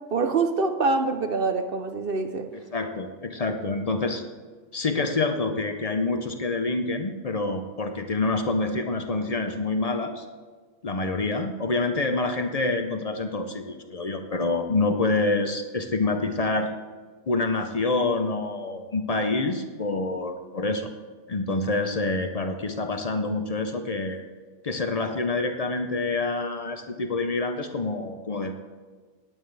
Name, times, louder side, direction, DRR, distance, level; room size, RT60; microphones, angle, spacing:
voice 1, 0.1-2.5, right 3 dB, 60° right, 6 dB, 0.6 m, -25 dB
voice 2, 2.7-4.2 4.7-10.3 10.8-16.7 17.3-20.9 21.3-24.2 24.6-28.5, left 3 dB, 65° left, 6 dB, 0.3 m, -27 dB
18.0 x 9.0 x 3.3 m, 1.5 s
omnidirectional pair, 1.7 m